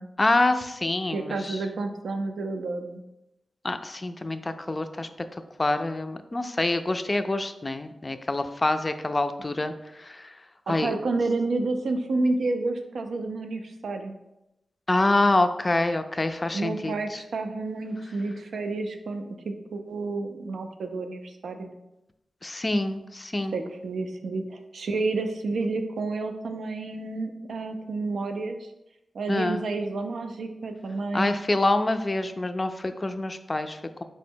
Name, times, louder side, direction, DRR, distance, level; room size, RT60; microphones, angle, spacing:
voice 1, 0.2-1.6 3.6-10.4 10.7-10.9 14.9-17.2 22.4-23.6 29.3-29.6 31.1-34.0, left 2 dB, 35° left, 9 dB, 0.3 m, -26 dB
voice 2, 1.1-3.0 10.7-14.2 16.5-21.8 23.4-28.6 29.1-31.4, right 3 dB, 80° right, 6 dB, 0.4 m, -30 dB
4.5 x 2.1 x 4.3 m, 0.92 s
cardioid pair, 60°, 0 cm